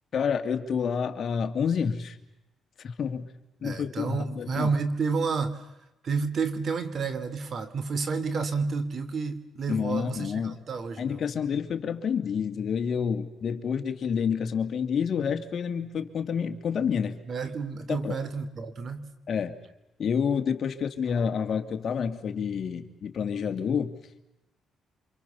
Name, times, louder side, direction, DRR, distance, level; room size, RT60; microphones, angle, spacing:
voice 1, 0.1-2.2 2.8-3.3 3.6-4.7 9.7-10.6 11.0-17.2 17.9-18.2 19.3-19.6 20.0-23.9, left 7 dB, 55° left, 6 dB, 2.4 m, -28 dB
voice 2, 3.6-5.6 6.0-11.2 17.3-19.1, right 4 dB, 50° right, 12 dB, 2.7 m, -30 dB
29.0 x 26.0 x 7.1 m, 0.94 s
cardioid pair, 90°, 0 cm